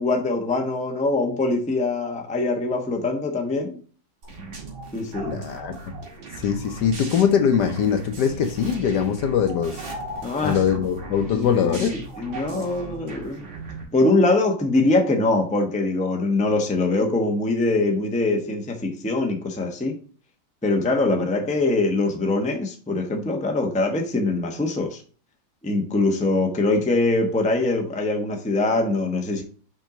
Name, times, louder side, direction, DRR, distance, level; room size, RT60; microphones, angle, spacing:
voice 1, 0.0-3.8 4.9-5.4 10.2-10.6 11.3-13.5 13.9-20.0 20.6-25.0 25.6-29.4, left 2 dB, 5° left, 0.7 m, -23 dB
sound 1, 4.2-13.8, right 3 dB, 85° right, 3.0 m, -37 dB
voice 2, 5.2-5.9 6.4-9.8 10.4-11.9, left 7 dB, 65° left, 1.2 m, -22 dB
5.9 x 5.5 x 3.8 m
omnidirectional pair, 2.2 m